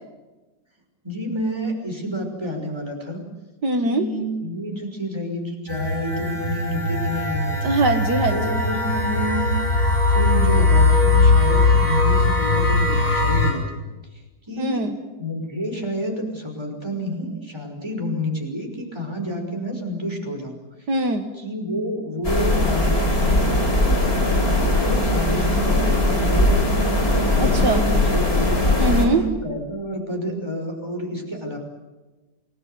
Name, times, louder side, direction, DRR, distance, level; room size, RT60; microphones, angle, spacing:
voice 1, 1.0-3.2 3.8-7.7 8.3-9.5 10.0-13.6 14.5-14.8 15.2-20.6 21.3-27.0 27.3-28.5 29.0-31.6, equal, 15° right, 2 dB, 5.8 m, -29 dB
voice 2, 3.6-4.0 7.6-8.4 14.6-14.9 20.9-21.3 27.4-27.8 28.8-29.2, right 2 dB, 75° right, 6 dB, 2.3 m, -21 dB
sound 1, 5.7-13.5, left 3 dB, 60° left, 6.2 m, -19 dB
sound 2, 22.2-29.1, left 1 dB, 35° left, 4.6 m, -19 dB
28.5 x 19.5 x 9.5 m, 1.2 s
omnidirectional pair, 1.8 m